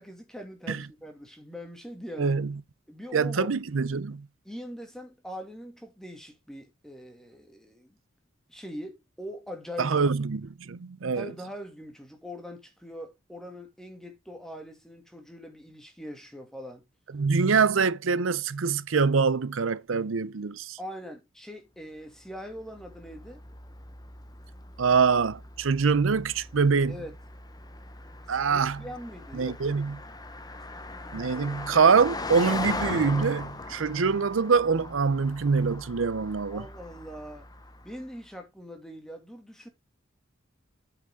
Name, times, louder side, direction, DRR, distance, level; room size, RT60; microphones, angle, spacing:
voice 1, 0.0-2.3 2.9-3.5 4.4-8.0 8.5-9.9 11.1-16.8 20.8-23.4 26.9-27.2 28.3-29.6 31.3-31.6 36.5-37.5 37.8-39.7, equal, 5° left, 2.2 m, -42 dB
voice 2, 2.2-2.6 3.1-4.3 9.8-11.3 17.1-20.8 24.8-27.0 28.3-28.8 29.3-30.0 31.1-36.7, right 5 dB, 75° right, 0.6 m, -24 dB
Car passing by, 22.3-38.1, left 2 dB, 20° left, 0.9 m, -40 dB
8.5 x 5.9 x 3.6 m
head